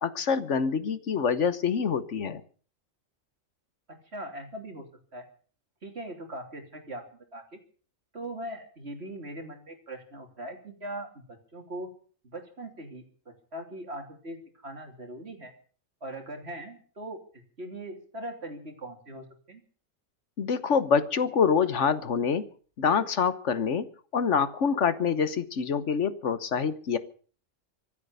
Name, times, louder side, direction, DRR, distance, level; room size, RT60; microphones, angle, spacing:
voice 1, 0.0-2.4 20.4-22.4 22.8-23.9 24.1-27.0, left 6 dB, 65° left, 13 dB, 1.3 m, -26 dB
voice 2, 3.9-4.8 5.1-5.3 5.8-7.0 7.3-7.6 8.1-11.9 12.2-15.5 16.0-17.2 17.6-19.6, right 1 dB, 55° right, 4 dB, 3.3 m, -40 dB
24.5 x 8.4 x 6.7 m, 0.43 s
omnidirectional pair, 1.3 m